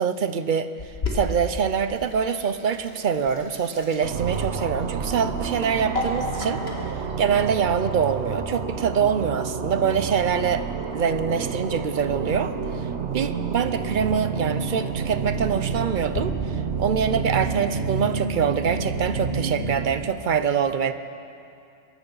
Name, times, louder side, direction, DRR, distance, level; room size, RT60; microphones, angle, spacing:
voice 1, 0.0-6.6 6.9-10.7 10.9-12.5 13.1-16.3 16.8-20.9, right 7 dB, 50° right, 11 dB, 0.7 m, -24 dB
Sink (filling or washing), 0.8-16.2, left 2 dB, 60° left, 2.4 m, -38 dB
sound 1, 4.0-20.2, right 5 dB, 70° right, 1.2 m, -29 dB
23.0 x 11.0 x 5.6 m, 2.6 s
omnidirectional pair, 1.2 m